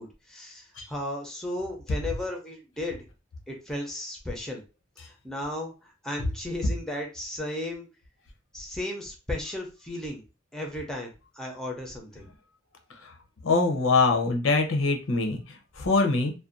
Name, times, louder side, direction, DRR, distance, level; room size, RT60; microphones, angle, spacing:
voice 1, 0.0-3.0 3.5-4.6 5.0-7.9 8.5-10.2 10.5-12.3, left 1 dB, 5° left, 1 dB, 0.5 m, -35 dB
voice 2, 13.4-16.3, left 3 dB, 85° left, 3 dB, 0.6 m, -24 dB
2.5 x 2.1 x 2.4 m, 0.30 s
head